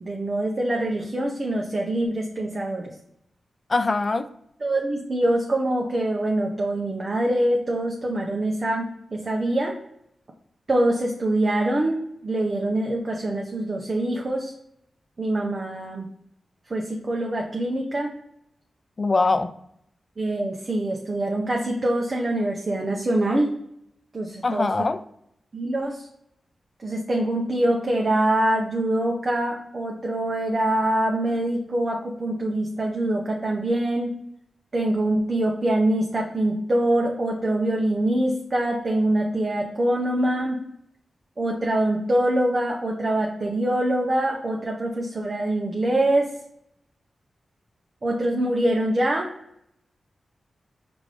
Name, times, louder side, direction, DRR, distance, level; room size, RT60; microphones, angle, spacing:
voice 1, 0.0-2.9 4.6-9.8 10.7-14.5 15.2-16.0 16.7-18.1 20.2-23.5 24.1-24.7 25.5-26.1 26.8-34.2 34.7-40.6 41.4-46.3 48.0-49.3, right 1 dB, 40° right, 0 dB, 0.6 m, -24 dB
voice 2, 3.7-4.3 19.0-19.5 24.4-25.0, left 3 dB, 40° left, 12 dB, 0.3 m, -22 dB
5.1 x 2.5 x 3.2 m, 0.74 s
wide cardioid pair, 80°, 0 cm